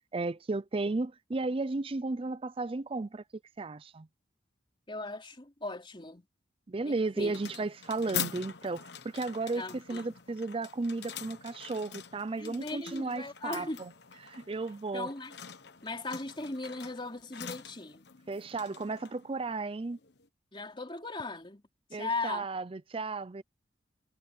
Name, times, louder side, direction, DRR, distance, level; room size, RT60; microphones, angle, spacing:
voice 1, 0.1-3.2 3.6-4.1 6.7-9.6 9.9-13.9 14.2-15.1 18.3-20.0 21.9-23.4, right 3 dB, 30° right, 0.4 m, -34 dB
voice 2, 4.9-6.2 6.8-7.4 9.5-10.1 12.4-13.8 14.9-15.3 15.8-18.1 20.5-21.6 21.9-22.4, left 3 dB, 25° left, 3.3 m, -38 dB
sound 1, 7.2-20.3, left 7 dB, 65° left, 1.1 m, -44 dB
head